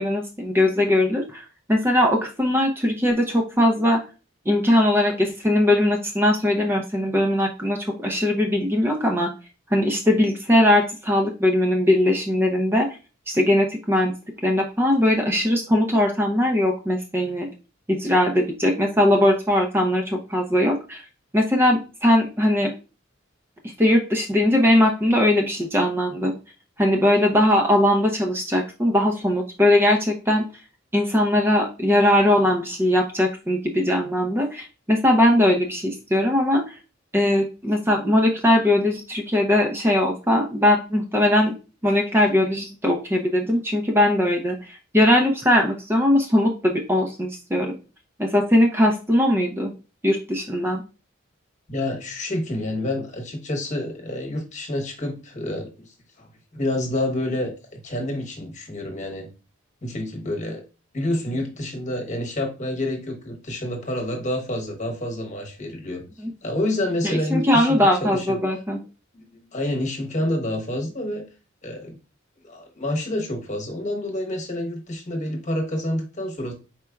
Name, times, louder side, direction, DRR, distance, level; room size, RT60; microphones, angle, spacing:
voice 1, 0.0-4.0 4.5-9.3 9.7-12.9 13.3-14.1 14.4-17.5 17.9-21.1 21.3-22.7 23.6-26.3 26.8-30.4 30.9-36.8 37.1-41.5 41.8-47.7 48.2-49.7 50.0-50.8 66.2-66.3 67.0-68.8, left 1 dB, 10° right, 2 dB, 0.6 m, -20 dB
voice 2, 51.7-59.3 59.8-60.6 60.9-66.1 66.4-68.4 69.1-71.2 71.6-72.0 72.4-76.5, left 1 dB, 40° left, 1 dB, 1.3 m, -28 dB
5.0 x 4.4 x 2.3 m, 0.32 s
head